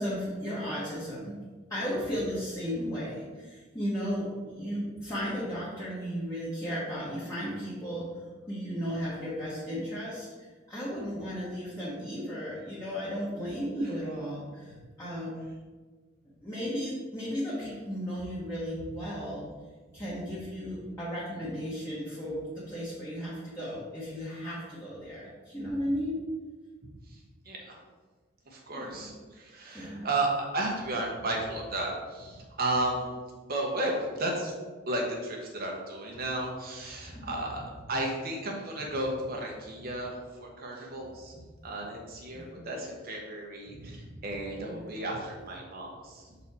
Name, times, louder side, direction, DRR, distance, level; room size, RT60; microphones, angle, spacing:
voice 1, 0.0-1.3 1.7-8.1 8.5-10.3 10.7-15.3 16.4-19.4 19.9-26.2 28.7-29.1 29.7-30.1 37.1-37.3 42.3-42.5 44.6-44.8, equal, 15° left, -9 dB, 1.3 m, -35 dB
voice 2, 27.4-27.8 28.5-33.1 33.4-34.5 34.9-46.4, right 2 dB, 50° right, -1 dB, 1.0 m, -33 dB
6.0 x 4.2 x 4.2 m, 1.4 s
head